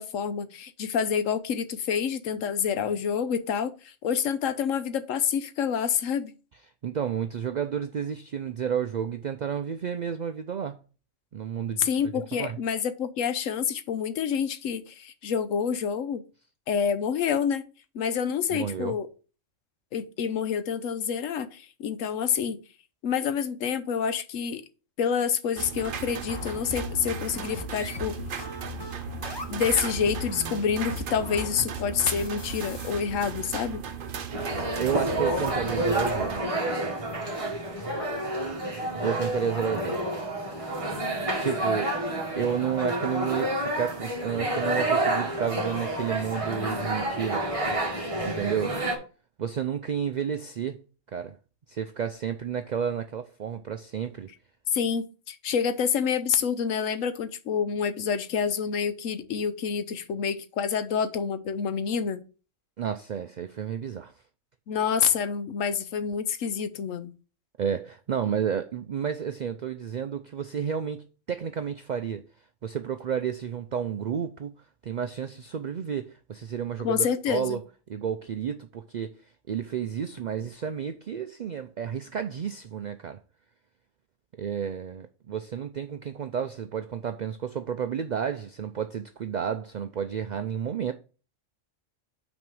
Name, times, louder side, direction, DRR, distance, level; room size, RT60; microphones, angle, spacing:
voice 1, 0.0-6.3 11.8-16.2 16.7-17.6 17.9-19.1 19.9-22.6 23.0-24.6 25.0-28.2 29.5-33.8 54.7-62.2 64.7-67.1 76.8-77.6, left 7 dB, 85° left, 1.1 m, -28 dB
voice 2, 6.8-10.8 11.3-12.0 12.3-12.6 18.5-19.0 34.8-36.4 39.0-40.1 40.6-40.7 41.4-42.0 42.4-47.5 48.2-48.8 49.4-50.8 51.1-51.4 51.7-54.3 62.8-64.1 67.6-72.2 72.6-74.6 74.8-77.6 77.9-79.2 79.5-83.2 84.4-90.9, right 8 dB, 75° right, 0.4 m, -31 dB
sound 1, 25.6-36.4, right 7 dB, 50° right, 0.7 m, -36 dB
sound 2, 26.3-32.9, left 5 dB, 20° left, 0.9 m, -39 dB
sound 3, 34.3-49.0, right 1 dB, 25° right, 1.5 m, -29 dB
6.0 x 4.2 x 6.1 m
omnidirectional pair, 1.3 m